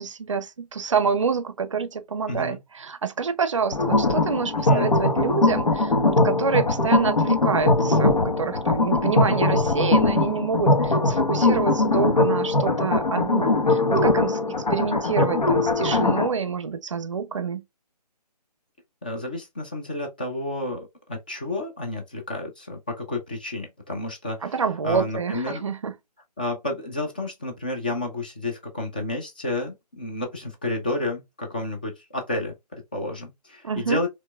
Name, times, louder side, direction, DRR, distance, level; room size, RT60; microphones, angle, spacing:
voice 1, 0.0-17.6 24.4-25.9 33.6-34.0, right 5 dB, 50° right, 0.5 m, -27 dB
voice 2, 2.3-2.6 4.7-4.9 19.0-24.5 24.8-25.6 26.4-34.1, left 2 dB, 15° left, 0.4 m, -31 dB
sound 1, 3.7-16.3, left 2 dB, 80° left, 1.2 m, -21 dB
4.3 x 3.0 x 2.3 m
figure-of-eight pair, 150°, 21 cm